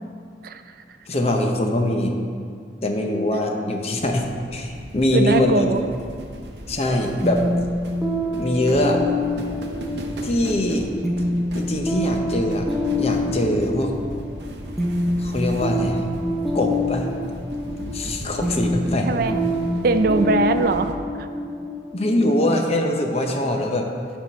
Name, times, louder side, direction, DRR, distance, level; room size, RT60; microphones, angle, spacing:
voice 1, 1.1-2.2 2.8-4.3 4.5-5.6 6.7-7.5 8.4-9.0 10.2-10.9 11.5-12.7 13.0-13.9 15.2-16.0 16.5-17.1 17.8-19.1 21.9-23.9, left 1 dB, 35° left, 3 dB, 0.7 m, -22 dB
sound 1, 4.0-20.9, right 1 dB, 75° right, 0.7 m, -37 dB
voice 2, 5.1-5.8 19.0-19.4 19.8-21.3, right 3 dB, 55° right, 9 dB, 0.4 m, -21 dB
sound 2, 7.2-22.8, left 1 dB, ahead, 0.7 m, -26 dB
9.7 x 3.7 x 5.6 m, 2.2 s
head